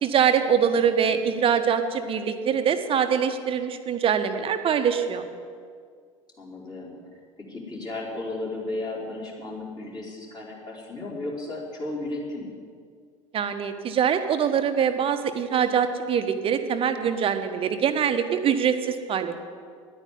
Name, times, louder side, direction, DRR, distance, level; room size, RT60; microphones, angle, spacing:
voice 1, 0.0-5.2 13.3-19.4, right 7 dB, 30° right, 8 dB, 1.2 m, -23 dB
voice 2, 0.7-1.2 6.4-12.5, left 2 dB, 25° left, -4 dB, 4.1 m, -35 dB
11.0 x 9.2 x 9.7 m, 2.1 s
figure-of-eight pair, 70°, 17 cm